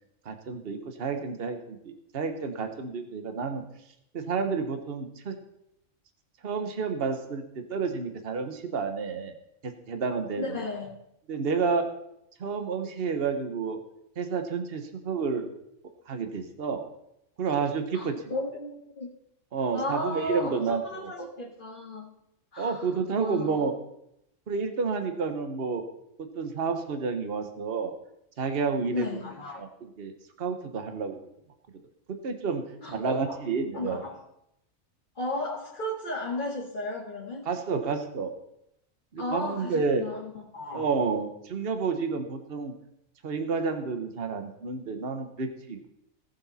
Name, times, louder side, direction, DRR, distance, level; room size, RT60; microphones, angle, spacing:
voice 1, 0.2-3.6 4.1-5.4 6.4-9.3 9.6-10.6 11.3-11.9 12.4-13.8 14.2-15.5 16.1-16.9 17.4-18.1 19.5-21.1 22.6-23.7 24.5-25.8 26.2-27.9 28.4-29.2 29.6-30.1 30.4-31.2 32.2-32.6 32.9-34.0 37.4-38.3 39.1-40.0 40.7-42.7 43.2-45.9, right 5 dB, 45° right, 7 dB, 1.3 m, -30 dB
voice 2, 10.4-11.0 17.9-19.1 19.7-22.2 22.5-22.9 23.2-23.7 28.9-29.6 32.8-33.4 33.7-34.2 35.2-37.4 39.2-40.9, left 2 dB, 40° left, -5 dB, 2.2 m, -34 dB
19.0 x 7.2 x 4.2 m, 0.80 s
omnidirectional pair, 1.4 m